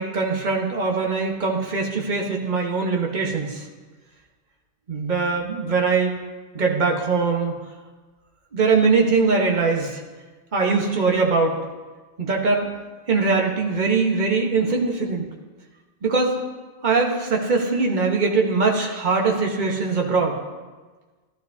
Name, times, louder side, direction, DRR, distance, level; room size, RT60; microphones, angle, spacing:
voice 1, 0.0-3.7 4.9-6.1 6.5-7.5 8.5-10.0 10.5-11.6 12.2-12.7 13.1-15.3 16.0-16.3 16.8-20.4, right 4 dB, 40° right, 1 dB, 1.4 m, -21 dB
15.0 x 12.0 x 2.8 m, 1.3 s
omnidirectional pair, 1.2 m